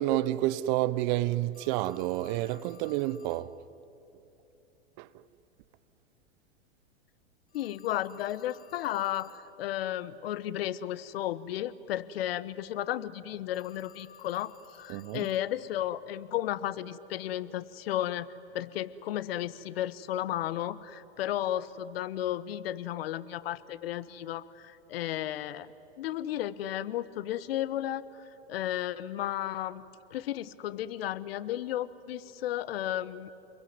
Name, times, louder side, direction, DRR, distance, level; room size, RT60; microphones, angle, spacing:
voice 1, 0.0-3.6 5.0-5.3 14.9-15.3, right 15 dB, 45° right, 0.9 m, -29 dB
Telephone, 1.5-3.5 7.5-9.5 13.5-15.5, left 8 dB, 90° left, 1.7 m, -56 dB
voice 2, 7.5-25.7 26.0-29.8 30.1-33.3, left 12 dB, 65° left, 1.2 m, -34 dB
28.5 x 22.0 x 9.5 m
hypercardioid pair, 115°, 32 cm